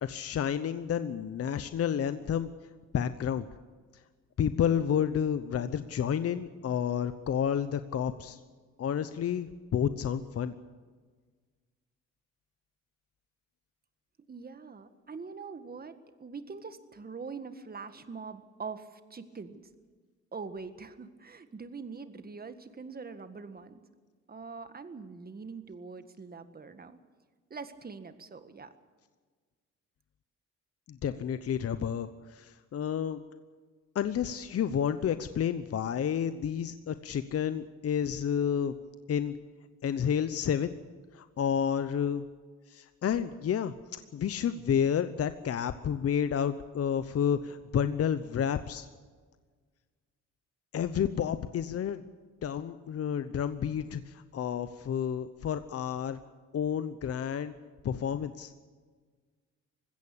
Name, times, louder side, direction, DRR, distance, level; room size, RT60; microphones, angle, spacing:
voice 1, 0.0-2.5 2.9-3.5 4.4-8.4 8.8-10.5 30.9-33.2 33.9-38.7 39.1-39.3 39.8-40.7 41.1-42.2 42.7-48.9 50.7-52.0 52.4-56.2 56.5-57.5 57.8-58.5, left 8 dB, 50° left, 11 dB, 0.9 m, -30 dB
voice 2, 14.3-19.6 20.3-23.8 24.3-27.0 27.5-28.7, right 5 dB, 30° right, 10 dB, 1.7 m, -43 dB
20.5 x 16.0 x 8.6 m, 1.5 s
cardioid pair, 90°, 30 cm